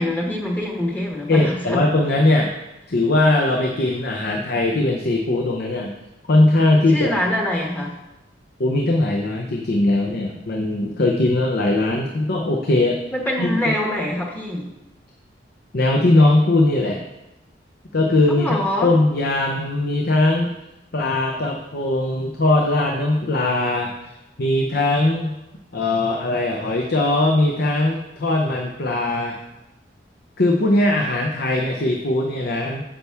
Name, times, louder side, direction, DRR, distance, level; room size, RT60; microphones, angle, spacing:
voice 1, 0.0-1.8 6.9-7.9 13.1-14.7 18.3-18.9, left 1 dB, 10° left, 0 dB, 1.1 m, -24 dB
voice 2, 1.3-2.5 2.9-5.9 6.3-7.3 8.6-13.0 13.4-13.7 15.7-17.0 17.9-20.5 20.9-23.9 24.4-25.3 25.7-29.4 30.4-32.8, left 2 dB, 60° left, 1 dB, 0.8 m, -20 dB
8.9 x 6.9 x 3.4 m, 0.93 s
head